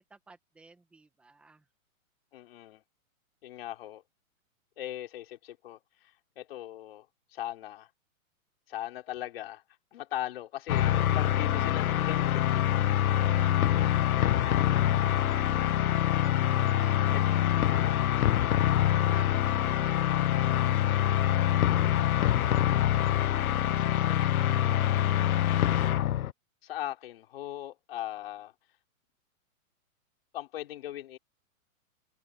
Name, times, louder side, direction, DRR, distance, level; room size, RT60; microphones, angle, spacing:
voice 1, 0.0-1.6 11.4-12.1 13.1-15.4 16.2-18.6 19.1-23.1 23.7-25.5, right 3 dB, 5° right, 1.5 m, -55 dB
voice 2, 2.3-2.8 3.4-4.0 4.8-7.1 7.3-7.9 8.7-9.6 9.9-12.6 17.1-17.2 26.6-28.5 30.3-31.2, left 13 dB, 45° left, 4.6 m, -39 dB
sound 1, 10.7-26.3, left 12 dB, 90° left, 0.9 m, -25 dB
hypercardioid pair, 175°, 42 cm